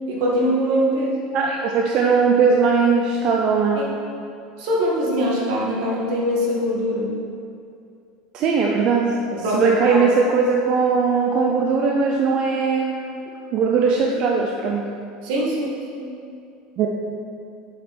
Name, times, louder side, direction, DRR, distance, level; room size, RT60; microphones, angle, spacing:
voice 1, 0.0-1.3 3.7-3.9 4.6-7.1 9.3-10.0 15.2-16.1, equal, 65° right, -4 dB, 2.1 m, -23 dB
voice 2, 1.3-3.8 8.3-9.1 9.5-13.2 13.5-14.8 16.8-16.9, right 5 dB, 35° right, 0 dB, 0.6 m, -19 dB
8.2 x 6.7 x 4.3 m, 2.5 s
cardioid pair, 165°, 2 cm